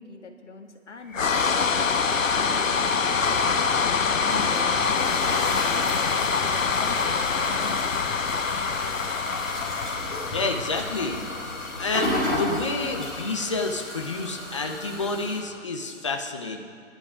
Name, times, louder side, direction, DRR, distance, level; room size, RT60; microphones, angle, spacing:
voice 1, 0.0-3.7 4.4-8.0, left 3 dB, 65° left, 3 dB, 1.7 m, -43 dB
sound 1, 1.1-15.2, left 5 dB, 85° left, 0.9 m, -26 dB
sound 2, 3.7-15.4, left 1 dB, ahead, 1.8 m, -34 dB
voice 2, 10.3-11.2 11.8-16.6, left 3 dB, 25° left, 3 dB, 0.6 m, -29 dB
24.0 x 11.5 x 2.4 m, 2.2 s
figure-of-eight pair, 155°, 39 cm